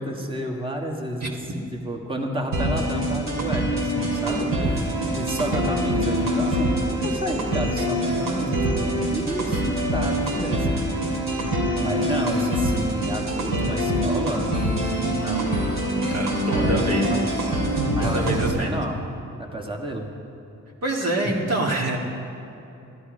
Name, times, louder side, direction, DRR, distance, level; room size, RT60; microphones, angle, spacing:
voice 1, 0.0-11.5 11.8-15.6 16.5-16.8 17.1-17.2 17.9-19.0 19.4-20.1, right 1 dB, 15° right, 1 dB, 1.7 m, -31 dB
sound 1, 2.5-18.5, equal, 80° right, 2.8 m, -24 dB
voice 2, 4.2-4.8 16.1-17.0 18.0-18.8 20.8-22.0, right 2 dB, 50° right, 0 dB, 2.0 m, -26 dB
13.0 x 12.0 x 5.1 m, 2.8 s
cardioid pair, 70°, 32 cm